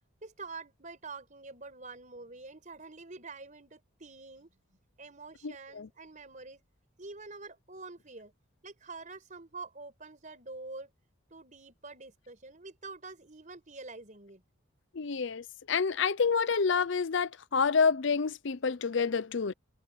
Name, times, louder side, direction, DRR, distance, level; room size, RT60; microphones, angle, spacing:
voice 1, 0.2-4.5 5.0-6.6 7.0-8.3 8.6-10.9 11.3-14.4, right 3 dB, 35° right, 5.2 m, -46 dB
voice 2, 5.4-5.9 14.9-19.5, left 5 dB, 60° left, 0.6 m, -28 dB
head